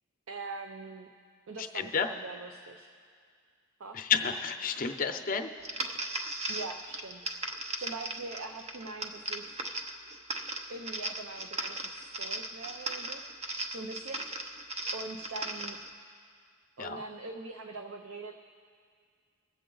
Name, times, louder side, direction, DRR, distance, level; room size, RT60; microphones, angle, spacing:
voice 1, 0.3-1.1 1.5-2.9 3.8-4.0 6.5-7.3 7.8-9.6 10.7-13.2 13.7-14.5 14.9-15.8 16.8-18.3, right 3 dB, 75° right, 5 dB, 0.6 m, -42 dB
voice 2, 1.7-2.1 3.9-5.5 16.8-17.0, left 6 dB, 40° left, 7 dB, 0.7 m, -30 dB
sound 1, 5.6-15.9, right 2 dB, 30° right, 0.7 m, -38 dB
23.5 x 7.8 x 3.9 m, 2.1 s
head